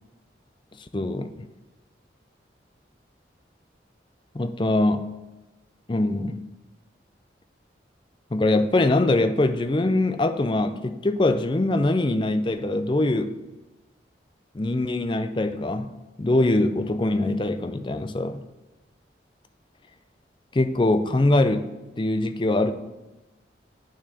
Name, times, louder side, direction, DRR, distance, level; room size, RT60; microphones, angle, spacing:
voice 1, 0.9-1.5 4.3-5.1 5.9-6.4 8.3-13.4 14.5-15.9 16.2-18.4 20.5-21.7 22.0-22.7, left 2 dB, 25° left, 10 dB, 0.4 m, -23 dB
8.7 x 6.1 x 4.2 m, 1.1 s
head